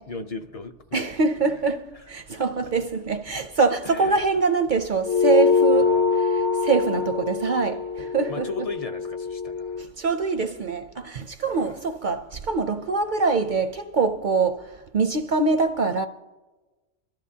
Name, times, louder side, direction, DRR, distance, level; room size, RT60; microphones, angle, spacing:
voice 1, 0.1-1.6 1.9-2.1 3.8-4.2 5.7-6.2 8.3-9.8 11.4-11.8, left 3 dB, 40° left, 0.5 m, -37 dB
voice 2, 0.9-8.5 9.8-16.1, right 4 dB, 55° right, 0.6 m, -24 dB
sound 1, 5.0-9.8, left 5 dB, 60° left, 1.0 m, -23 dB
25.5 x 13.5 x 2.8 m
omnidirectional pair, 1.3 m